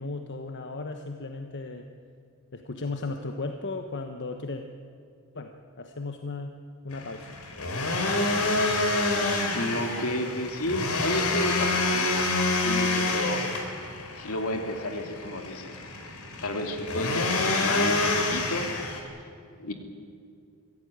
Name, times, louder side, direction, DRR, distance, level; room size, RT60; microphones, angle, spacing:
voice 1, 0.0-1.9 2.5-4.6 5.3-6.5 6.8-7.4, left 3 dB, 55° left, 6 dB, 1.2 m, -35 dB
sound 1, 6.9-19.0, left 2 dB, 90° left, 3.7 m, -27 dB
voice 2, 9.5-12.3 12.6-13.4 14.1-15.8 16.4-18.7 19.6-19.7, left 1 dB, 75° left, 5 dB, 2.6 m, -31 dB
23.5 x 16.0 x 9.4 m, 2.4 s
head